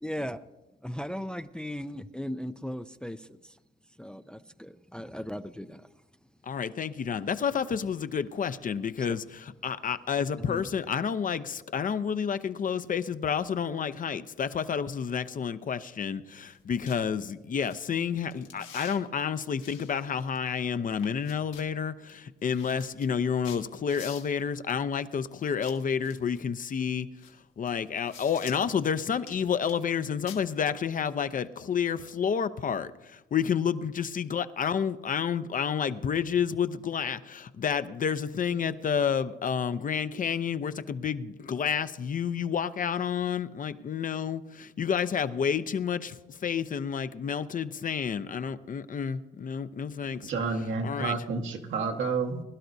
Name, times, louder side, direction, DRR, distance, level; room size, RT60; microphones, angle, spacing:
voice 1, 0.0-0.4 0.8-3.5 4.0-5.9 9.0-9.2 10.5-10.7, equal, 5° left, 0.5 m, -37 dB
voice 2, 6.5-27.1 27.6-46.1 46.4-50.3 50.8-51.2, left 7 dB, 45° left, 0.6 m, -30 dB
sound 1, 16.5-16.6 16.9-17.0 17.5-17.8 18.2-19.0 19.6-20.6 20.9-21.7 22.1-22.2 22.4-24.4 25.4-26.4 27.2-27.3 27.7-28.8 29.2-30.0 30.3-30.4, left 8 dB, 85° left, 1.7 m, -48 dB
voice 3, 50.2-52.4, right 4 dB, 80° right, 1.7 m, -30 dB
21.5 x 11.5 x 2.7 m
cardioid pair, 90°, 20 cm